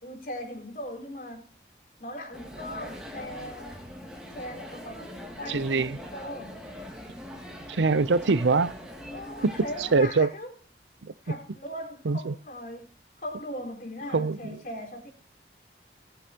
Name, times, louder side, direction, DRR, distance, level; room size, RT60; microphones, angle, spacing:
voice 1, 0.0-1.5 2.0-3.8 4.3-6.6 9.1-10.5 11.2-12.9 13.2-15.1, left 1 dB, 50° left, 3.9 m, -39 dB
sound 1, 2.3-10.1, equal, 5° right, 2.5 m, -42 dB
voice 2, 5.5-6.0 7.7-8.7 9.4-9.5 9.9-10.3 11.0-11.1 12.1-12.3 14.1-14.6, right 4 dB, 90° right, 0.6 m, -23 dB
20.0 x 7.9 x 2.9 m
head